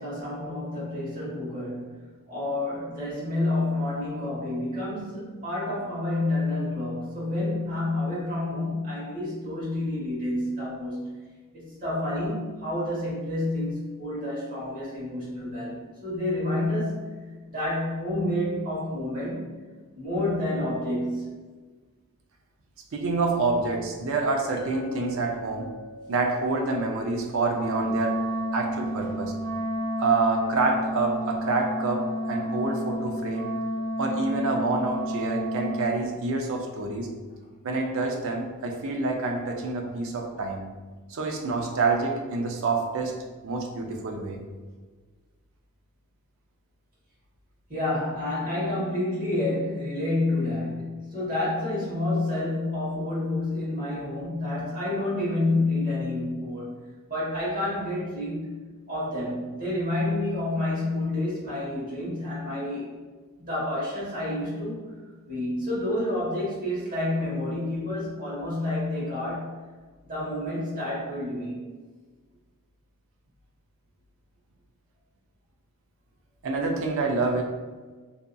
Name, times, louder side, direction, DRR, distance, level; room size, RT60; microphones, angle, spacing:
voice 1, 0.0-2.0 2.3-11.1 11.5-17.1 17.5-19.5 19.9-21.4 47.7-56.7 57.1-58.6 58.9-62.9 63.4-64.9 65.3-69.6 70.0-71.7, left 1 dB, 40° right, -8 dB, 1.2 m, -29 dB
voice 2, 22.9-25.7 26.1-28.2 28.5-29.3 30.0-33.5 34.0-37.1 37.6-40.6 41.1-43.1 43.4-44.4 76.4-77.4, right 3 dB, 65° right, 2 dB, 0.4 m, -27 dB
Chink clink, 24.6-29.0, equal, 50° left, 0.4 m, -45 dB
Wind instrument woodwind instrument, 27.5-35.9, equal, 85° right, 1.1 m, -30 dB
2.7 x 2.5 x 2.2 m, 1.4 s
head